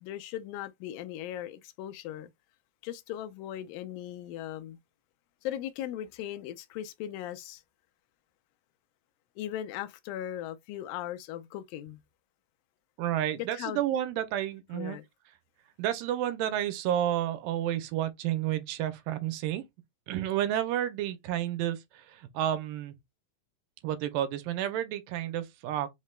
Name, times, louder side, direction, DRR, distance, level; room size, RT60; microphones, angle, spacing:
voice 1, 0.0-2.3 2.8-4.8 5.4-7.6 9.4-12.0 13.4-13.8 14.7-15.0, left 12 dB, 85° left, 2.3 m, -38 dB
voice 2, 13.0-15.0 15.8-19.6 20.1-22.9 23.8-25.9, right 11 dB, 80° right, 2.3 m, -31 dB
5.7 x 2.2 x 3.1 m
omnidirectional pair, 4.0 m